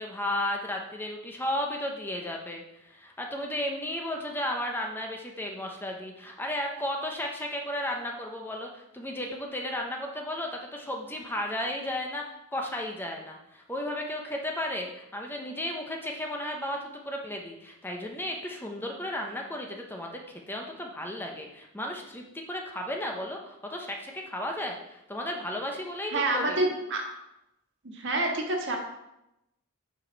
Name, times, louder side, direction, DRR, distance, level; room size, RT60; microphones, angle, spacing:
voice 1, 0.0-26.7, left 1 dB, 10° left, 1 dB, 0.8 m, -34 dB
voice 2, 26.1-27.0 27.8-28.8, right 2 dB, 60° right, 1 dB, 1.6 m, -27 dB
9.0 x 5.0 x 4.0 m, 0.88 s
head